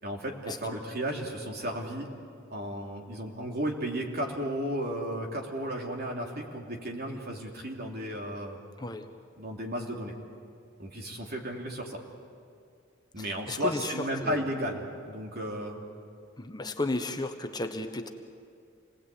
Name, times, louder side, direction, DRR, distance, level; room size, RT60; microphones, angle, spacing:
voice 1, 0.0-2.1 2.5-8.6 9.4-10.1 10.8-12.0 13.1-15.8, equal, 50° right, 1 dB, 3.1 m, -34 dB
voice 2, 13.2-14.4 16.4-18.1, left 2 dB, 20° left, 6 dB, 1.1 m, -34 dB
27.5 x 19.5 x 8.4 m, 2.3 s
head